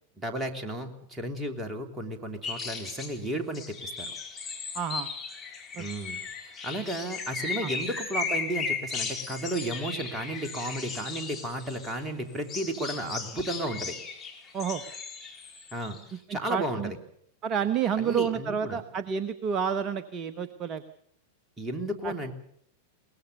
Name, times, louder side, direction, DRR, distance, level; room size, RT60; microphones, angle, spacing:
voice 1, 0.2-4.1 5.8-14.0 15.7-17.0 18.0-18.8 21.6-22.3, right 1 dB, 15° right, 5 dB, 3.0 m, -33 dB
Vogelenzang Birds, 2.4-3.1 3.5-12.0 12.3-16.0, left 5 dB, 20° left, 4.3 m, -36 dB
voice 2, 4.7-5.1 5.8-5.9 7.6-7.7 14.5-14.8 16.3-16.9 17.4-20.8 22.0-22.1, right 7 dB, 30° right, 12 dB, 1.0 m, -29 dB
22.0 x 19.0 x 6.9 m, 0.68 s
figure-of-eight pair, 95°, 0 cm